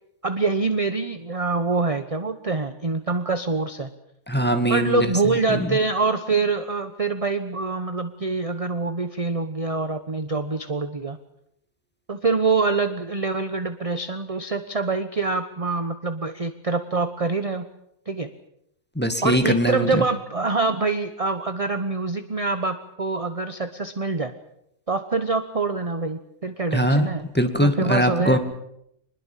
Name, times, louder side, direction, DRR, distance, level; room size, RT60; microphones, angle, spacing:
voice 1, 0.2-3.9 4.7-11.2 12.1-17.7 18.1-18.3 19.2-24.3 24.9-27.2 27.6-28.4, right 3 dB, 25° right, 9 dB, 1.1 m, -25 dB
voice 2, 4.3-5.1 5.5-5.8 19.0-20.0 26.7-27.1 27.3-28.4, equal, 5° left, 6 dB, 2.0 m, -21 dB
24.5 x 21.0 x 7.5 m, 0.76 s
omnidirectional pair, 1.4 m